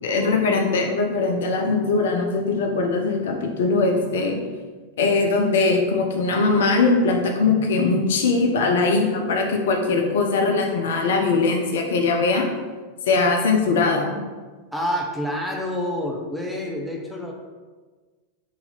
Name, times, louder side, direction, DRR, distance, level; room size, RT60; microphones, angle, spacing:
voice 1, 0.0-4.4 5.0-12.5 13.1-14.2, left 3 dB, 60° left, 2 dB, 0.5 m, -21 dB
voice 2, 14.7-17.3, left 1 dB, ahead, -1 dB, 0.6 m, -27 dB
4.2 x 2.8 x 3.8 m, 1.4 s
figure-of-eight pair, 90°, 0 cm